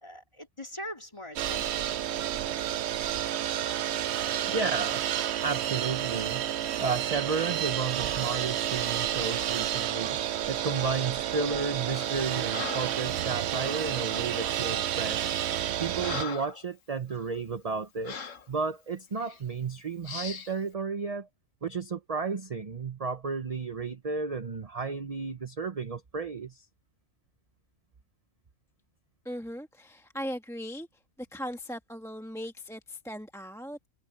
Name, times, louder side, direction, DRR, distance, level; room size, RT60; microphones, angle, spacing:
voice 1, 0.0-2.3, left 1 dB, 20° left, 3.0 m, -43 dB
sound 1, 1.4-16.2, right 11 dB, 65° right, 0.8 m, -30 dB
voice 2, 4.5-5.1 5.4-6.5 6.8-10.2 10.5-15.4 15.8-18.2 18.5-21.3 21.6-26.6, right 5 dB, 35° right, 0.8 m, -33 dB
Breathing, 11.9-12.2 12.5-13.0 14.1-14.3 15.0-15.2 15.6-16.6 17.1-17.3 18.0-18.5 19.2-19.4 20.0-20.5, left 6 dB, 80° left, 1.6 m, -39 dB
voice 3, 29.2-30.9 31.2-33.8, equal, ahead, 1.4 m, -38 dB
omnidirectional pair, 1.3 m